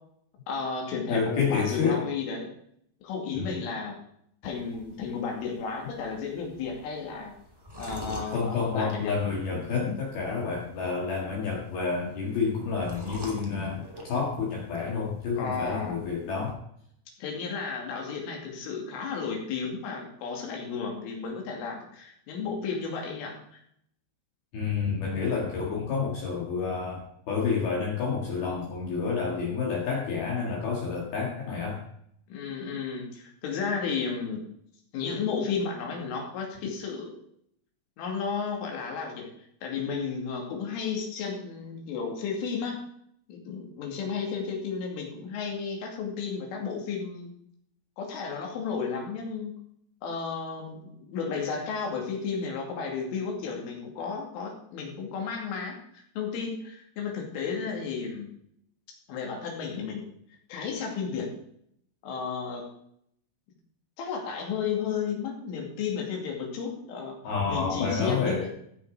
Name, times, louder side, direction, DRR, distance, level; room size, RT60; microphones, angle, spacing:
voice 1, 0.5-2.5 3.0-4.0 4.4-7.3 7.8-9.1 15.4-16.0 17.2-23.6 32.3-34.4 34.9-37.1 38.0-39.3 39.6-42.8 43.3-47.3 48.0-49.6 50.0-58.3 59.1-60.1 60.5-61.4 62.0-62.7 64.0-67.2 67.5-68.5, left 5 dB, 75° left, 1 dB, 4.9 m, -33 dB
voice 2, 1.1-2.0 3.3-3.6 8.3-16.6 24.5-31.8 67.2-68.5, left 5 dB, 60° left, -2 dB, 3.3 m, -29 dB
sound 1, 4.4-16.5, equal, 15° right, 0.9 m, -47 dB
15.0 x 6.9 x 4.9 m, 0.69 s
omnidirectional pair, 5.8 m